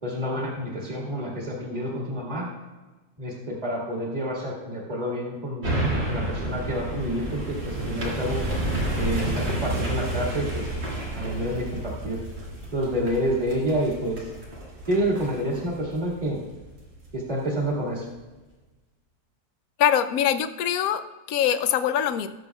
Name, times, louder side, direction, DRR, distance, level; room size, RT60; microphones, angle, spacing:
voice 1, 0.0-2.5 3.2-5.7 6.1-8.4 9.0-10.5 11.2-12.2 12.7-14.2 14.9-16.4 17.1-18.0, equal, 25° right, -4 dB, 2.0 m, -28 dB
sound 1, 5.6-17.1 17.5-17.6, right 1 dB, 80° right, 3.2 m, -30 dB
voice 2, 19.8-22.3, left 9 dB, 70° left, 11 dB, 0.9 m, -23 dB
18.0 x 7.1 x 2.3 m, 1.2 s
omnidirectional pair, 1.9 m